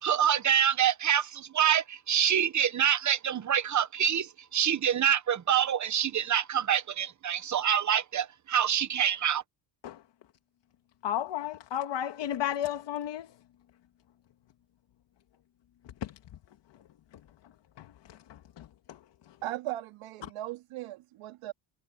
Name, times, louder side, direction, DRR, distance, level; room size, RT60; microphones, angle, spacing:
voice 1, 0.0-9.4, right 9 dB, 35° right, 1.0 m, -26 dB
voice 2, 11.0-13.3 16.0-16.1 17.8-17.9 18.6-19.0, left 11 dB, 60° left, 2.1 m, -33 dB
voice 3, 19.4-21.5, right 15 dB, 85° right, 3.5 m, -38 dB
cardioid pair, 115°, 48 cm